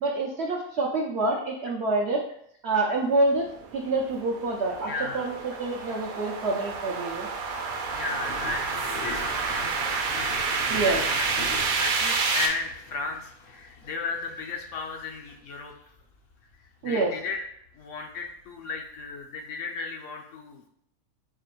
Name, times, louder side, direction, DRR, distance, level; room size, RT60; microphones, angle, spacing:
voice 1, 0.0-2.2 2.6-3.5 3.7-7.3 10.7-11.0 16.8-17.1, right 2 dB, 65° right, -1 dB, 0.6 m, -27 dB
sound 1, 3.1-17.8 18.1-18.5 18.8-19.2, left 3 dB, 85° left, 1.3 m, -44 dB
sound 2, 3.4-12.5, right 5 dB, 85° right, 1.1 m, -29 dB
voice 2, 4.9-5.3 7.8-10.3 10.6-11.3 11.7-15.7 16.8-17.4 17.7-20.7, left 4 dB, 70° left, 2 dB, 0.8 m, -35 dB
4.7 x 2.5 x 3.0 m, 0.69 s
omnidirectional pair, 1.5 m